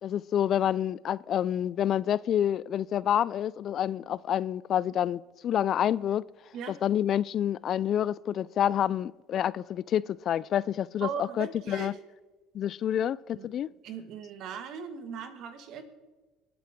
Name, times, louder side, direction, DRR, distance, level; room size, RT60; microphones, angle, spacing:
voice 1, 0.0-6.2 6.7-11.9 12.5-13.7, left 10 dB, 50° left, 0.3 m, -28 dB
voice 2, 11.0-12.0 13.3-13.5 13.8-15.8, right 7 dB, 60° right, 1.8 m, -38 dB
24.5 x 8.6 x 3.6 m
supercardioid pair, 80°, 0 cm